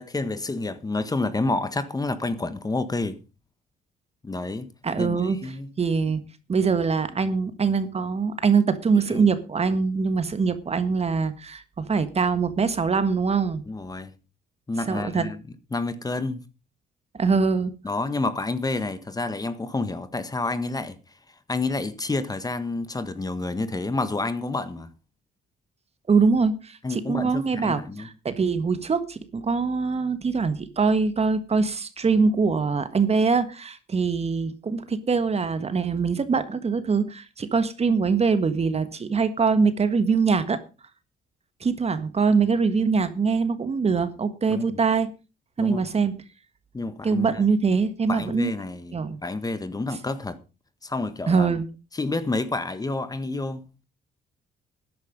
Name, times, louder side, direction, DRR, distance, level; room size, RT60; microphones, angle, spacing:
voice 1, 0.0-3.2 4.2-4.7 5.0-5.7 8.9-9.3 13.7-14.1 14.7-15.4 15.7-16.4 17.8-21.0 21.5-24.9 26.8-28.1 44.5-44.7 45.6-45.9 46.7-47.4 48.1-49.0 49.2-50.4 50.8-51.5 51.9-53.6, left 3 dB, 20° left, 1.6 m, -29 dB
voice 2, 4.8-5.5 5.8-6.2 6.5-13.6 14.9-15.3 17.2-17.7 26.1-40.6 41.6-45.1 45.6-46.1 47.0-48.5 48.9-49.2 51.3-51.6, right 5 dB, 35° right, 1.6 m, -23 dB
13.5 x 10.5 x 5.2 m
cardioid pair, 95°, 18 cm